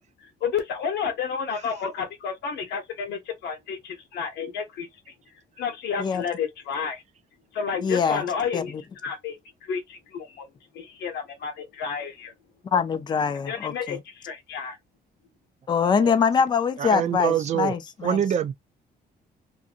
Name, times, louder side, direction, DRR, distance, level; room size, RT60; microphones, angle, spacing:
voice 1, 0.0-4.9 5.6-7.0 7.5-8.7 9.0-10.5 10.7-12.3 13.5-14.8, left 6 dB, 85° left, 0.9 m, -31 dB
voice 2, 7.8-8.2 8.5-8.8 12.7-14.0 15.7-18.2, left 6 dB, 25° left, 0.4 m, -24 dB
voice 3, 16.8-17.7 18.0-18.5, right 9 dB, 45° right, 0.4 m, -25 dB
2.6 x 2.5 x 2.5 m
cardioid pair, 160°, 17 cm